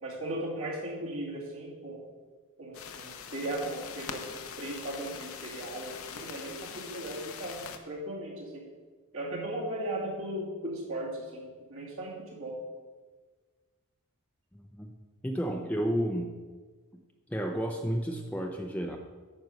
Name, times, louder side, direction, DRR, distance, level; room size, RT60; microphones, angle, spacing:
voice 1, 0.0-2.0 2.6-8.6 9.1-12.6, right 1 dB, 65° right, -4 dB, 2.6 m, -37 dB
sound 1, 2.7-7.8, left 6 dB, 70° left, 0.8 m, -43 dB
voice 2, 15.2-16.3 17.3-19.0, equal, 5° left, 2 dB, 0.5 m, -31 dB
9.4 x 5.3 x 6.3 m, 1.4 s
head